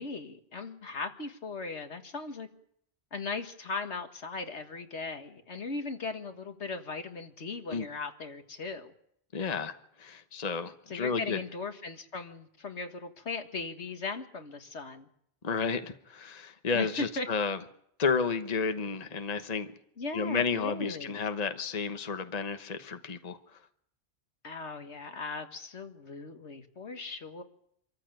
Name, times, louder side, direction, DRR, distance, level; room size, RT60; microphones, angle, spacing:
voice 1, 0.0-2.5 3.1-8.9 10.9-15.1 16.7-17.3 20.0-21.2 24.4-27.4, left 4 dB, 85° left, 6 dB, 2.0 m, -38 dB
voice 2, 9.3-11.4 15.4-17.6 18.0-19.7 20.1-23.4, left 5 dB, 40° left, 8 dB, 1.2 m, -32 dB
25.5 x 14.5 x 9.1 m, 0.72 s
omnidirectional pair, 1.1 m